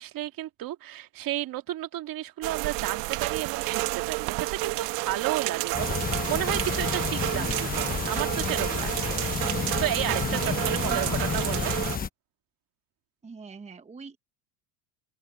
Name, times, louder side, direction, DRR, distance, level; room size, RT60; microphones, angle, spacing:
voice 1, 0.0-9.1 9.5-11.8, right 14 dB, 45° right, 2.1 m, -33 dB
sound 1, 2.4-12.0, right 22 dB, 60° right, 1.4 m, -30 dB
sound 2, 5.7-12.1, left 6 dB, 20° left, 1.0 m, -30 dB
voice 2, 7.3-8.2 9.5-9.8 10.4-11.2 13.2-14.2, right 4 dB, 15° right, 1.0 m, -44 dB
open air
supercardioid pair, 120°, 49 cm